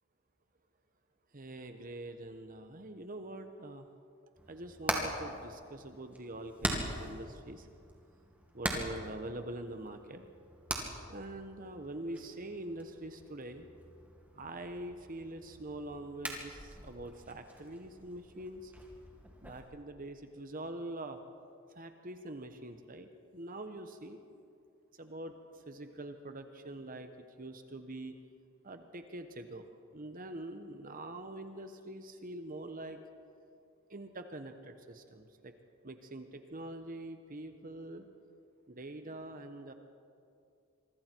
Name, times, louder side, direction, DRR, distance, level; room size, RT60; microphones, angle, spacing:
voice 1, 1.3-3.8 4.5-7.7 8.5-10.2 11.1-13.6 14.4-18.7 19.4-21.2 21.8-23.1 23.3-24.2 25.0-25.3 25.7-27.1 27.4-28.1 28.6-29.7 29.9-33.0 33.9-35.5 35.8-38.0 38.7-39.7, right 1 dB, 40° right, 7 dB, 1.2 m, -44 dB
Hammer, 4.4-19.6, right 1 dB, 5° right, 2.5 m, -42 dB
26.5 x 24.5 x 4.7 m, 2.4 s
head